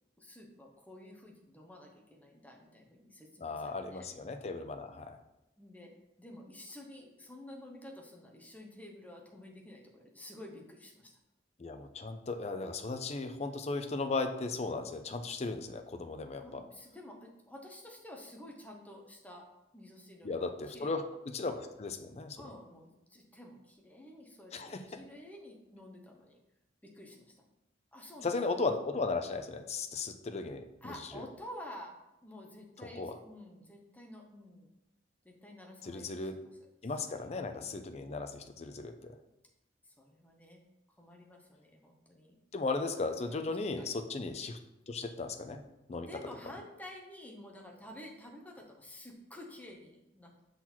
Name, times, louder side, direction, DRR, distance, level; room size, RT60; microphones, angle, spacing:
voice 1, 0.2-4.1 5.6-5.9 6.2-11.1 16.4-19.4 19.7-20.9 22.4-26.4 26.8-27.5 27.9-28.5 30.8-31.9 32.2-34.7 35.2-36.5 36.8-37.4 40.0-40.6 41.0-42.4 43.1-43.9 46.0-50.4, left 1 dB, 10° left, 0 dB, 0.8 m, -50 dB
voice 2, 3.4-5.2 11.6-16.7 20.2-22.4 24.5-25.0 28.2-31.2 32.8-33.2 35.8-36.4 36.8-39.1 42.5-44.6 44.9-45.6 45.9-46.1, left 3 dB, 35° left, 7 dB, 0.4 m, -36 dB
5.9 x 4.0 x 4.3 m, 0.91 s
head